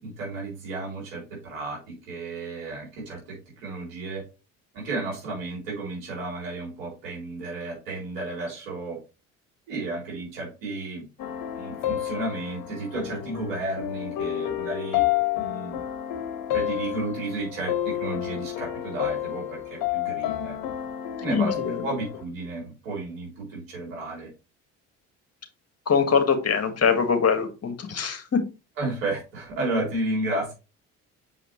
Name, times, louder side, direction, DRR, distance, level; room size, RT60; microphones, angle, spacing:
voice 1, 0.0-4.2 4.7-9.0 9.7-11.1 11.5-15.0 15.3-15.8 16.5-20.6 21.2-21.6 21.8-24.3 28.8-30.5, right 2 dB, 85° right, -2 dB, 3.8 m, -32 dB
sound 1, 11.2-22.2, left 12 dB, 60° left, 1.2 m, -30 dB
voice 2, 21.2-21.9 25.8-28.4, left 6 dB, 40° left, 6 dB, 1.8 m, -23 dB
7.2 x 5.0 x 3.1 m, 0.29 s
hypercardioid pair, 55°, 38 cm